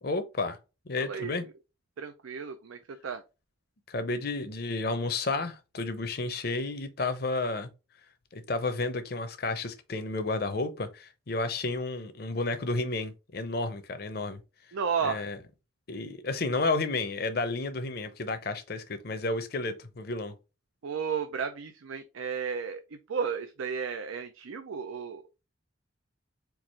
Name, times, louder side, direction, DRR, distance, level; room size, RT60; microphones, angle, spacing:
voice 1, 0.0-0.6 0.9-1.5 3.9-7.7 8.3-14.4 15.0-15.4 15.9-20.3, left 3 dB, 50° left, 0.6 m, -31 dB
voice 2, 1.0-1.4 2.0-3.2 14.7-15.3 20.8-25.2, right 6 dB, 90° right, 0.5 m, -33 dB
4.6 x 2.5 x 4.1 m
head